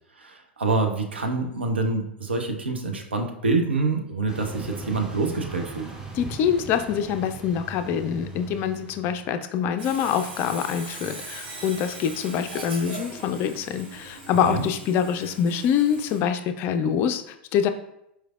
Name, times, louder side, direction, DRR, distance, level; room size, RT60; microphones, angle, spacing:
voice 1, 0.2-5.9 14.4-14.6, right 3 dB, 75° right, 4 dB, 0.6 m, -26 dB
sound 1, 4.3-9.3, right 3 dB, 10° right, 0.7 m, -39 dB
voice 2, 6.1-17.7, left 8 dB, 35° left, 8 dB, 0.3 m, -25 dB
Sawing, 9.8-16.2, right 2 dB, 60° right, 1.4 m, -40 dB
4.5 x 3.2 x 2.4 m, 0.80 s
figure-of-eight pair, 90°, 6 cm